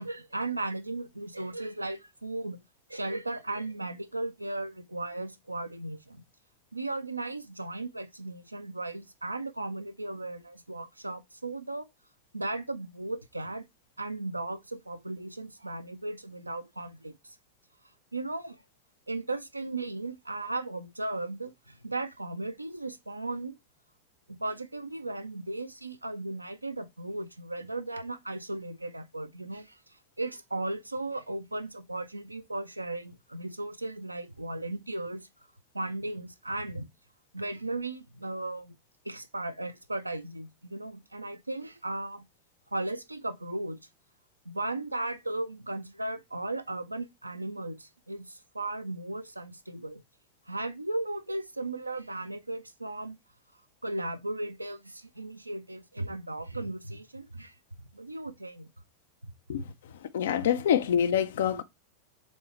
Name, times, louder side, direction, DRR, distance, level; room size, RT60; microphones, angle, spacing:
voice 1, 0.0-2.6 2.9-6.2 6.7-11.9 12.3-13.6 14.0-17.4 18.1-18.6 19.1-23.5 24.3-35.2 35.7-36.9 37.3-38.8 39.0-42.2 42.7-43.8 44.5-50.0 50.5-53.2 53.8-57.6 57.9-58.7 59.5-59.7 61.5-61.6, right 2 dB, 85° right, 0.4 m, -36 dB
voice 2, 60.1-61.6, left 9 dB, 60° left, 0.4 m, -25 dB
3.7 x 3.1 x 3.1 m
figure-of-eight pair, 90°, 0 cm